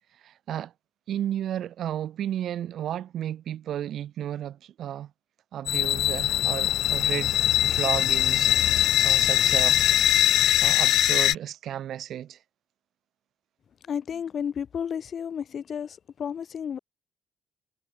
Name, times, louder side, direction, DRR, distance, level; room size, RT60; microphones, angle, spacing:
voice 1, 0.2-0.7 1.1-5.1 5.5-8.5 9.0-9.9 10.6-12.4, right 11 dB, 70° right, 2.6 m, -33 dB
sound 1, 5.7-11.3, left 13 dB, 80° left, 0.3 m, -22 dB
voice 2, 13.9-16.8, left 8 dB, 55° left, 1.5 m, -32 dB
cardioid pair, 90°, 0 cm